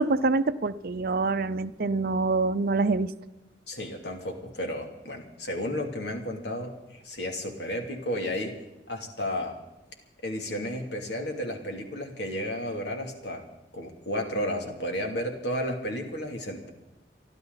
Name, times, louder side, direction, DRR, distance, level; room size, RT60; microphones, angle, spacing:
voice 1, 0.0-3.1, right 3 dB, 55° right, 11 dB, 0.6 m, -25 dB
voice 2, 3.7-8.5 8.9-9.6 10.2-13.4 13.7-16.7, left 1 dB, 65° left, 3 dB, 2.8 m, -32 dB
29.5 x 11.5 x 4.0 m, 1.0 s
head